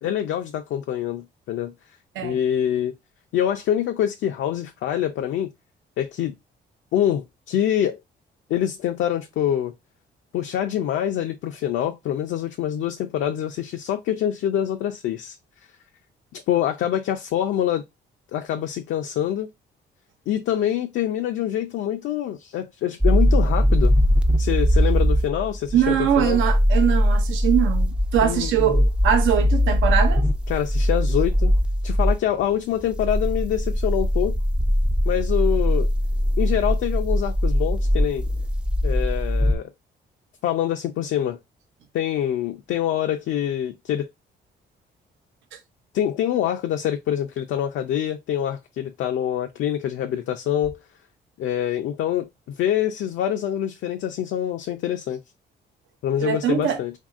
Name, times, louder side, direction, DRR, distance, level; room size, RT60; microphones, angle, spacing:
voice 1, 0.0-1.7 2.2-2.9 3.3-5.5 6.0-6.4 6.9-8.0 8.5-9.7 10.3-15.4 16.3-17.8 18.3-19.5 20.3-23.9 24.4-26.4 28.2-28.8 30.5-31.5 31.8-34.4 35.1-35.9 36.4-38.3 38.8-39.7 40.4-41.4 41.9-44.1 45.9-50.8 51.4-55.2 56.0-56.9, left 10 dB, 75° left, 0.4 m, -25 dB
sound 1, 23.0-32.2 32.8-39.5, equal, 5° right, 0.3 m, -21 dB
voice 2, 25.7-30.2 56.2-56.8, right 10 dB, 75° right, 0.6 m, -22 dB
2.8 x 2.6 x 2.4 m
cardioid pair, 90°, 20 cm